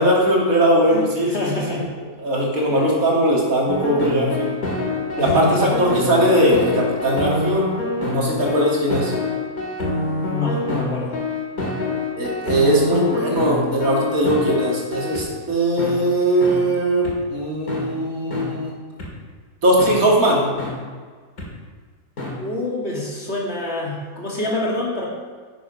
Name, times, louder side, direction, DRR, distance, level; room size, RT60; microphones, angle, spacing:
voice 1, 0.0-1.8 2.2-4.5 5.2-7.7 8.0-9.1 12.2-18.7 19.6-20.5, right 1 dB, 70° right, -3 dB, 2.9 m, -19 dB
voice 2, 0.9-1.9 2.7-3.0 5.2-5.7 10.3-11.1 22.3-25.1, left 2 dB, 45° left, -5 dB, 2.8 m, -27 dB
sound 1, 3.7-15.2 15.8-15.9 16.4-16.5 17.0-17.1 17.7-17.8 18.3-18.4 19.0-19.1 19.8-19.9 20.6-20.7 21.4-21.5 22.2-22.3, left 2 dB, 80° left, 2.8 m, -26 dB
10.5 x 7.7 x 5.2 m, 1.5 s
omnidirectional pair, 1.5 m